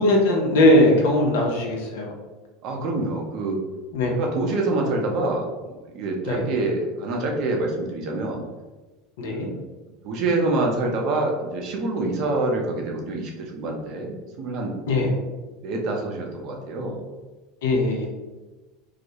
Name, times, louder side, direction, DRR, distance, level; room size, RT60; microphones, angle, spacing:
voice 1, 0.0-2.1 3.9-4.1 6.3-6.4 9.2-9.5 14.9-15.2 17.6-18.1, left 1 dB, 85° left, 0 dB, 0.6 m, -19 dB
voice 2, 2.6-3.6 4.2-8.4 9.2-9.6 10.0-14.8 15.6-17.0, right 2 dB, 55° right, 1 dB, 0.6 m, -26 dB
2.4 x 2.0 x 2.8 m, 1.2 s
supercardioid pair, 130°, 0 cm